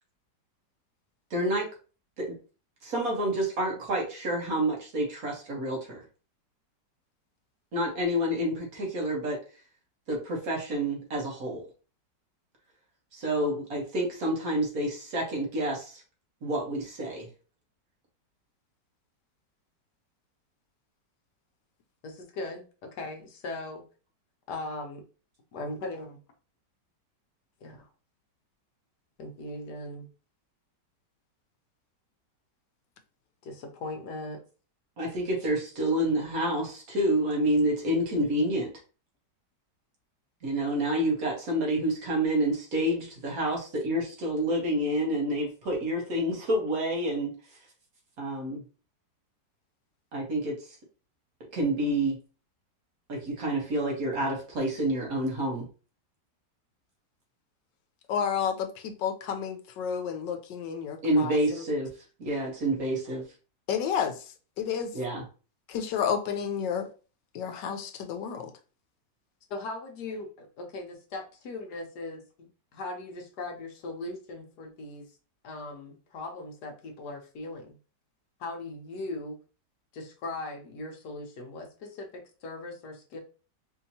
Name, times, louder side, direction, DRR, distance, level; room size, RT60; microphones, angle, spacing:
voice 1, 1.3-1.7 2.2-2.3 2.8-6.0 7.7-9.4 10.1-11.6 13.1-16.0 16.4-17.3 35.0-38.7 40.4-47.4 48.2-48.6 50.1-50.7 51.5-52.2 53.1-55.6 61.0-61.9 62.2-63.2 64.9-65.2, right 1 dB, 55° right, 1.6 m, -28 dB
voice 2, 22.0-23.8 24.5-25.0 25.5-26.2 27.6-27.9 29.2-30.1 33.4-34.4 69.5-75.1 75.4-77.8 78.4-79.4 79.9-83.2, left 2 dB, 70° left, 1.3 m, -39 dB
voice 3, 58.1-61.6 63.7-64.2 64.6-64.9 65.7-66.9 67.3-68.5, left 7 dB, 85° left, 1.3 m, -31 dB
4.4 x 2.8 x 2.7 m
omnidirectional pair, 1.9 m